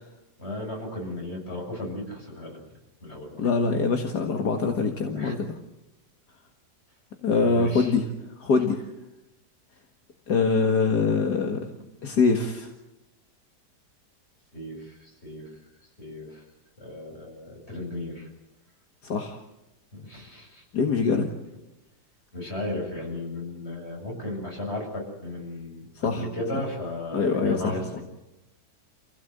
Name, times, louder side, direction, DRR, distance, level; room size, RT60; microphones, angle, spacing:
voice 1, 0.4-3.6 5.1-5.3 7.4-7.9 11.8-11.9 14.5-15.6 16.0-16.5 16.8-18.3 19.9-20.6 22.3-27.9, left 1 dB, 40° left, 0 dB, 7.7 m, -35 dB
voice 2, 3.4-5.5 7.2-8.0 8.4-8.8 10.3-11.6 12.0-12.7 19.0-19.4 20.7-21.3 26.0-26.2 27.1-27.7, left 4 dB, 75° left, 4 dB, 2.3 m, -23 dB
28.5 x 16.5 x 8.0 m, 0.95 s
omnidirectional pair, 1.8 m